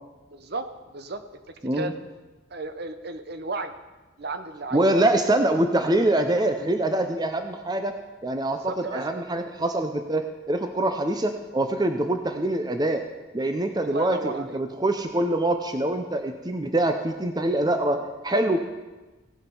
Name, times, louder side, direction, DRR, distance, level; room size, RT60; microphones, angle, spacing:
voice 1, 0.3-0.7 0.9-1.2 1.7-1.9 2.5-3.7 4.2-5.0 8.5-9.3 13.8-14.6, right 2 dB, 55° right, 9 dB, 0.8 m, -34 dB
voice 2, 4.7-7.9 8.2-13.0 13.3-18.7, right 1 dB, 20° right, 6 dB, 0.6 m, -24 dB
16.5 x 7.3 x 5.4 m, 1.2 s
head